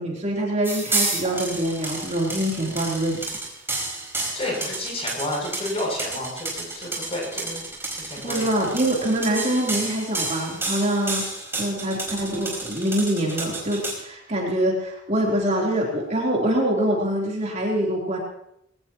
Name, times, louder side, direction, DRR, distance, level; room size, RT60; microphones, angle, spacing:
voice 1, 0.0-3.3 8.2-11.2 11.6-18.2, right 1 dB, 40° right, -3 dB, 3.6 m, -24 dB
sound 1, 0.6-14.0, right 3 dB, 15° right, 4.7 m, -30 dB
voice 2, 4.3-8.4 8.7-8.9, left 1 dB, 30° left, -1 dB, 7.7 m, -31 dB
21.0 x 18.0 x 3.1 m, 0.76 s
head